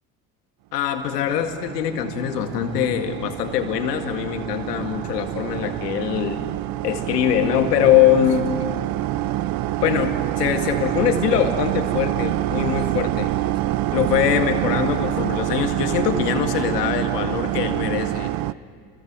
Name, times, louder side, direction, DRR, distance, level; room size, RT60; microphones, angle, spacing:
voice 1, 0.7-6.4 6.8-8.5 9.8-13.3 13.9-18.3, left 10 dB, 85° left, 6 dB, 2.1 m, -22 dB
sound 1, 1.0-18.5, right 15 dB, 50° right, 0.7 m, -26 dB
29.5 x 22.5 x 6.2 m, 2.2 s
hypercardioid pair, 65°, 46 cm